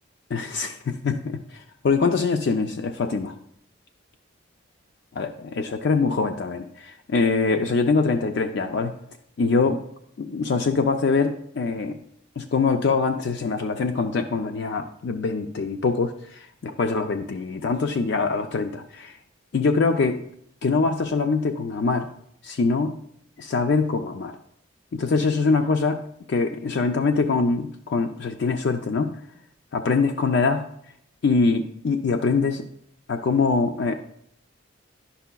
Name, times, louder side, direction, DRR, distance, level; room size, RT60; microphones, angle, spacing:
voice 1, 0.3-3.3 5.2-8.9 9.4-9.8 10.2-12.0 12.4-19.2 19.5-20.2 20.6-22.1 22.4-23.0 23.4-24.3 24.9-29.2 29.7-30.7 31.2-32.7 33.1-34.0, left 4 dB, 55° left, 6 dB, 0.4 m, -23 dB
11.5 x 5.5 x 2.2 m, 0.71 s
head